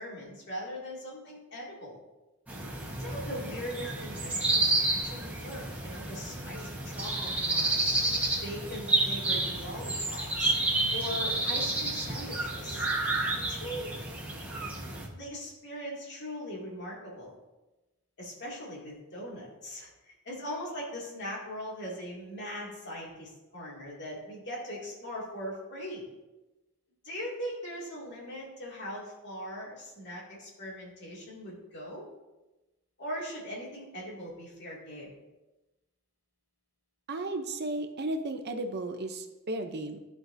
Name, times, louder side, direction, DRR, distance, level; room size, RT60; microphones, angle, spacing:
voice 1, 0.0-2.0 3.0-8.0 8.4-10.5 10.9-12.9 13.5-13.9 15.1-17.4 18.2-26.1 27.0-32.0 33.0-35.1, equal, 55° left, -4 dB, 2.4 m, -40 dB
sound 1, 2.5-15.1, right 2 dB, 5° right, 1.3 m, -30 dB
voice 2, 37.1-40.0, right 2 dB, 50° right, 6 dB, 0.7 m, -34 dB
13.5 x 4.7 x 2.7 m, 1.1 s
head